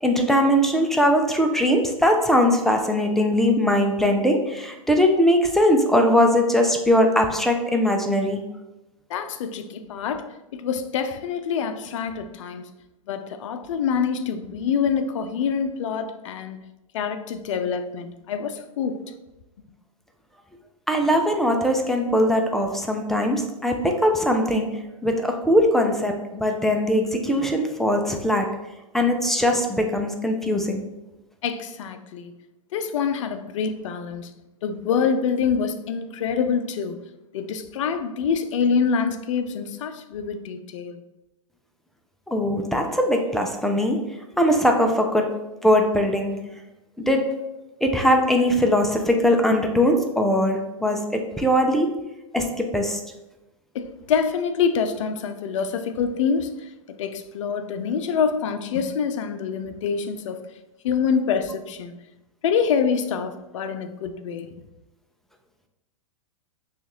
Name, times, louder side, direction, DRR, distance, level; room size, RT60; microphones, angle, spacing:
voice 1, 0.0-8.4 20.9-28.6 28.9-30.9 42.3-44.1 44.4-45.3 45.6-46.4 47.0-47.3 47.8-52.0 52.3-53.0, equal, ahead, 0.5 m, -21 dB
voice 2, 9.1-12.7 13.1-16.6 16.9-19.0 31.4-32.3 32.7-34.3 34.6-37.0 37.3-41.0 53.7-56.5 57.0-60.4 60.8-61.9 62.4-64.6, left 6 dB, 60° left, 0.5 m, -26 dB
6.2 x 2.5 x 3.0 m
hypercardioid pair, 110°, 18 cm